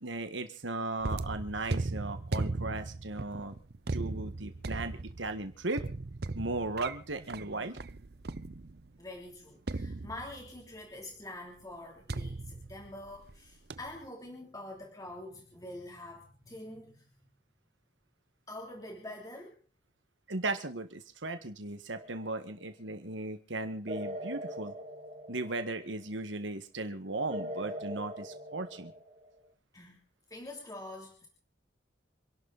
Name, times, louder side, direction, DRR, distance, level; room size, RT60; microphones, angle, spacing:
voice 1, 0.0-3.6 3.9-5.8 6.4-7.8 20.3-24.7 25.3-28.9, right 2 dB, 80° right, 8 dB, 1.7 m, -37 dB
sound 1, 1.0-8.9 9.7-10.7 12.1-13.4 13.7-14.0, right 3 dB, 55° right, 0.7 m, -37 dB
voice 2, 9.0-17.1 18.5-19.5 29.7-30.0 30.3-31.3, left 1 dB, 20° left, 0 dB, 3.3 m, -45 dB
sound 2, 21.9-22.5 23.9-25.9 27.3-29.4, equal, 35° right, 2.4 m, -41 dB
27.0 x 12.0 x 4.2 m, 0.39 s
head